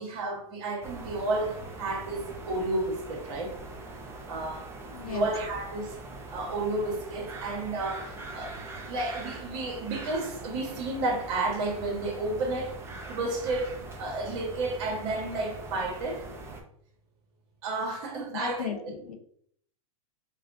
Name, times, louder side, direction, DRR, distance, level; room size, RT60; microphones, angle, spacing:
voice 1, 0.0-3.5 4.3-4.7 5.1-6.0 6.3-8.6 8.9-12.8 13.1-16.3 17.6-18.9, right 2 dB, 55° right, 1.4 m, -31 dB
sound 1, 0.8-16.6, right 2 dB, 15° right, 0.7 m, -42 dB
voice 2, 4.9-5.3 18.3-19.1, left 9 dB, 85° left, 0.8 m, -36 dB
4.7 x 2.3 x 2.6 m
hypercardioid pair, 120°, 19 cm